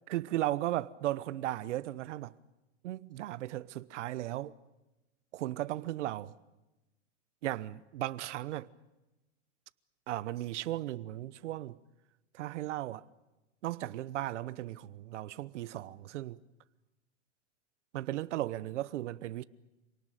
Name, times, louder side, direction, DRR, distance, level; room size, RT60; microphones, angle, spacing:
voice 1, 0.1-2.3 2.8-4.5 5.3-6.3 7.4-8.7 10.1-11.8 12.3-13.0 13.6-16.4 17.9-19.4, right 15 dB, 80° right, 1.0 m, -36 dB
27.0 x 19.0 x 9.2 m
supercardioid pair, 155°, 35 cm